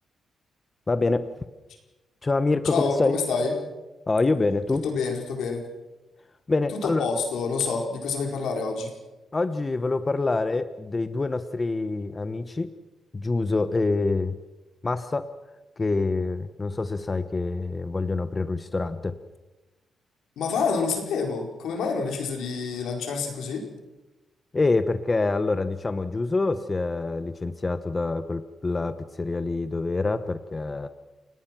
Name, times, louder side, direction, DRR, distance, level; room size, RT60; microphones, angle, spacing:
voice 1, 0.9-1.3 2.2-3.1 4.1-4.8 6.5-7.1 9.3-12.7 13.1-14.4 14.8-15.3 15.8-19.2 24.5-30.9, left 3 dB, 25° left, 11 dB, 0.9 m, -26 dB
voice 2, 2.7-3.5 4.7-5.6 6.8-8.9 20.4-23.7, left 5 dB, 90° left, 2 dB, 5.0 m, -27 dB
29.5 x 18.0 x 6.1 m, 1.1 s
cardioid pair, 120°, 0 cm